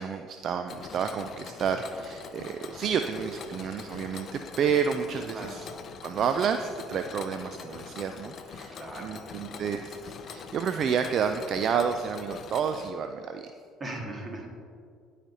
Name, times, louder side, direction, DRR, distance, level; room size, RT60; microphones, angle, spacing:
voice 1, 0.0-5.7 6.0-13.5, right 7 dB, 55° right, 8 dB, 0.3 m, -30 dB
Mechanisms, 0.7-12.9, left 6 dB, 50° left, 0.5 m, -43 dB
voice 2, 8.7-9.6 13.8-14.5, right 1 dB, 30° right, 0 dB, 1.7 m, -39 dB
11.5 x 4.9 x 2.8 m, 2.3 s
hypercardioid pair, 65°, 0 cm